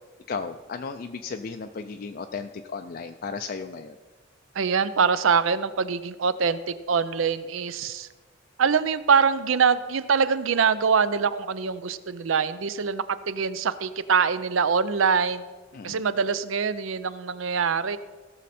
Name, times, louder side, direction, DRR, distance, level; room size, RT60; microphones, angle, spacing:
voice 1, 0.3-4.0 15.7-16.0, left 5 dB, 50° left, 6 dB, 0.4 m, -35 dB
voice 2, 4.5-8.1 8.6-15.4 15.8-18.0, right 6 dB, 85° right, 14 dB, 0.5 m, -24 dB
16.5 x 6.4 x 4.3 m, 1.4 s
head